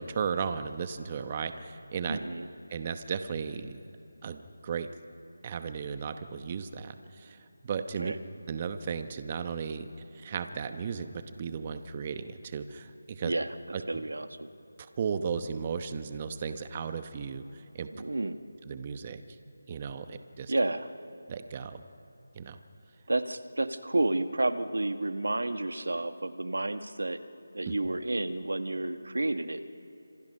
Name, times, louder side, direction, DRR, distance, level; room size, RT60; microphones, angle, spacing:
voice 1, 0.0-2.2 2.7-3.8 4.2-4.9 5.4-7.4 7.6-8.1 8.5-13.3 13.7-13.8 15.0-17.9 18.6-19.2 19.7-20.5 21.3-21.8 22.3-22.6 27.7-27.8, right 6 dB, 25° right, 9 dB, 0.9 m, -35 dB
voice 2, 2.1-2.5 8.0-8.2 13.2-13.5 13.9-14.5 17.9-18.4 20.5-20.9 23.1-27.2 27.5-29.7, right 2 dB, 80° right, 8 dB, 1.7 m, -30 dB
30.0 x 26.5 x 5.5 m, 3.0 s
figure-of-eight pair, 170°, 0 cm